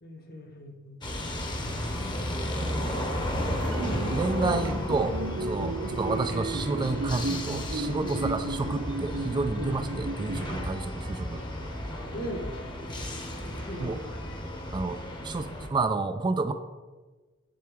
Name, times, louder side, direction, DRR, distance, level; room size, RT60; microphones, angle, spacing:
voice 1, 0.0-2.1 8.0-8.2 12.1-12.4 13.6-14.2, equal, 50° left, 3 dB, 1.2 m, -40 dB
sound 1, 1.0-15.7, left 1 dB, 25° left, 0.9 m, -33 dB
voice 2, 2.6-3.2 4.1-11.4 13.8-14.0 14.7-16.5, right 3 dB, 25° right, 9 dB, 0.3 m, -30 dB
sound 2, 2.9-14.4, equal, 80° left, 2.0 m, -49 dB
sound 3, 3.7-10.8, right 2 dB, 70° right, 0.6 m, -34 dB
7.6 x 7.0 x 3.5 m, 1.3 s
head